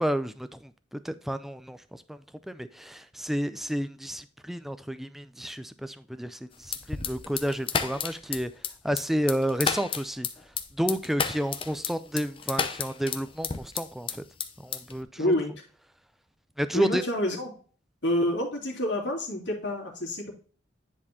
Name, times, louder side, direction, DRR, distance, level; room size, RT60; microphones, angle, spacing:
voice 1, 0.0-2.2 2.5-8.5 8.8-10.3 10.8-14.2 14.6-15.3 16.6-17.0, equal, ahead, 0.3 m, -31 dB
sound 1, 6.6-14.1 14.4-15.0, left 6 dB, 30° left, 0.6 m, -31 dB
voice 2, 15.2-15.5 16.7-17.5 18.0-20.3, left 1 dB, 70° left, 2.5 m, -28 dB
10.0 x 4.2 x 2.7 m
head